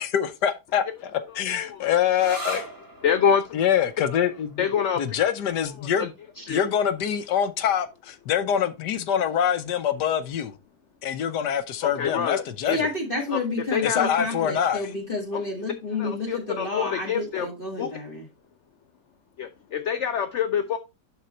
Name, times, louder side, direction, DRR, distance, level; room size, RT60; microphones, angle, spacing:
voice 1, 0.0-2.6 3.5-4.7 5.0-6.1 6.5-10.6 11.0-12.8 13.8-14.9, left 9 dB, 80° left, 1.4 m, -25 dB
voice 2, 1.5-1.9 3.0-3.6 4.6-5.2 6.4-6.6 11.8-12.8 13.3-13.4 13.7-14.1 15.3-15.4 16.0-17.5 17.8-17.9 19.4-20.8, left 7 dB, 60° left, 0.8 m, -26 dB
sound 1, 2.1-9.5, right 1 dB, 10° right, 2.2 m, -42 dB
voice 3, 12.7-18.2, left 2 dB, 30° left, 2.2 m, -30 dB
10.5 x 3.9 x 4.4 m
omnidirectional pair, 1.8 m